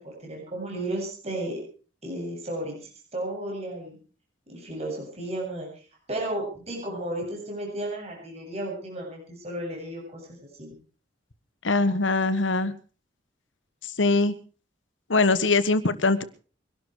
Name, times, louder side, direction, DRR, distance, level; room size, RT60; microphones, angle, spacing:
voice 1, 0.0-1.6 2.0-4.0 4.5-5.7 6.1-10.2 10.6-10.7, right 1 dB, 35° right, -1 dB, 8.0 m, -33 dB
voice 2, 11.6-12.7 13.8-14.3 15.1-16.2, left 3 dB, 85° left, 14 dB, 1.5 m, -22 dB
23.5 x 12.5 x 4.8 m, 0.40 s
head